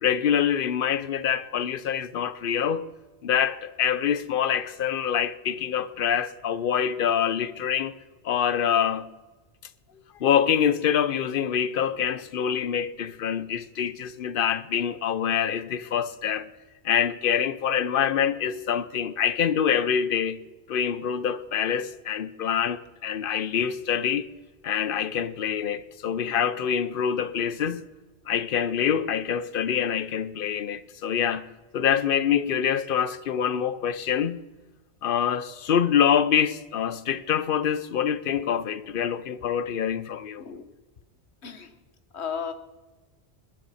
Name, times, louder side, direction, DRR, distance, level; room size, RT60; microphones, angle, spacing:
voice 1, 0.0-2.9 3.2-7.9 8.2-9.1 10.2-16.5 16.8-20.4 20.7-24.2 24.6-27.8 28.3-34.4 35.0-40.4, left 8 dB, 55° left, 0.8 m, -25 dB
voice 2, 42.1-42.5, left 6 dB, 75° left, 1.3 m, -34 dB
21.0 x 10.0 x 4.2 m
omnidirectional pair, 1.1 m